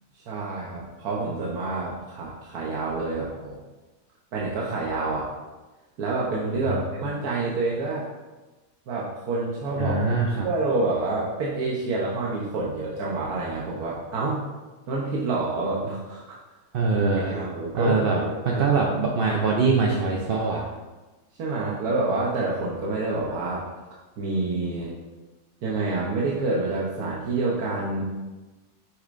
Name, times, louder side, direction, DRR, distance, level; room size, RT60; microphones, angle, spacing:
voice 1, 0.1-3.6 4.3-5.3 6.0-8.1 8.9-10.0 10.4-14.4 14.9-16.4 17.3-18.7 21.4-23.6 24.2-24.9 25.6-28.0, right 3 dB, 85° right, -4 dB, 1.4 m, -28 dB
voice 2, 9.8-10.5 16.7-17.4 17.7-18.2 18.4-20.6, right 4 dB, 55° right, -1 dB, 0.6 m, -23 dB
6.5 x 6.3 x 2.5 m, 1.2 s
omnidirectional pair, 1.6 m